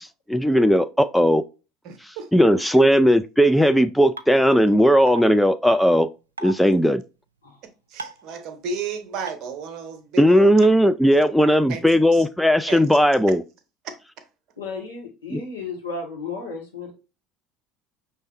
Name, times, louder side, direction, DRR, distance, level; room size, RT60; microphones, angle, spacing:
voice 1, 0.0-1.4 2.3-6.1 6.4-7.0 10.2-13.4 15.3-15.4, equal, ahead, 0.3 m, -17 dB
voice 2, 1.8-2.3 7.6-10.5 11.4-11.8 12.1-12.3 12.7-12.8 13.8-14.2, right 4 dB, 50° right, 0.9 m, -34 dB
sound 1, 4.2-4.3 5.1-5.2 6.4-6.5 8.0-8.2 9.3-9.4 10.6-10.7, right 3 dB, 85° right, 0.3 m, -33 dB
voice 3, 14.6-16.9, left 4 dB, 80° left, 1.6 m, -33 dB
5.4 x 3.2 x 2.5 m
figure-of-eight pair, 65°, 0 cm